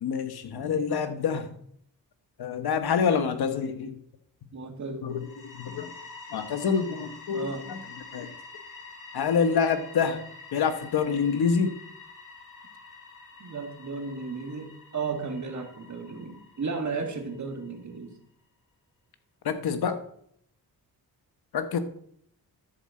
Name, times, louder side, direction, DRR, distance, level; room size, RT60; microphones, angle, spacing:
voice 1, 0.0-1.6 2.4-4.0 5.0-6.0 6.3-7.8 8.1-8.3 9.1-11.8 19.4-20.0 21.5-21.8, left 6 dB, 75° left, 9 dB, 1.2 m, -27 dB
voice 2, 4.5-5.1 7.3-7.6 13.4-18.1, right 4 dB, 50° right, 4 dB, 1.8 m, -34 dB
sound 1, 5.1-17.8, left 4 dB, 55° left, 2.5 m, -47 dB
11.0 x 4.2 x 7.6 m, 0.67 s
wide cardioid pair, 115°, 38 cm